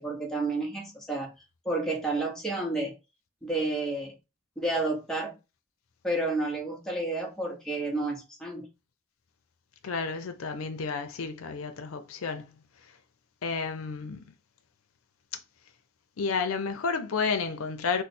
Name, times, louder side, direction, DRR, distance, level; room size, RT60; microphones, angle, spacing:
voice 1, 0.0-1.3 1.6-2.9 3.4-4.2 4.6-5.3 6.0-8.7, right 2 dB, ahead, 0.8 m, -30 dB
voice 2, 9.8-12.6 13.4-14.3 16.2-18.0, left 5 dB, 80° left, 0.5 m, -31 dB
3.1 x 2.0 x 4.1 m
head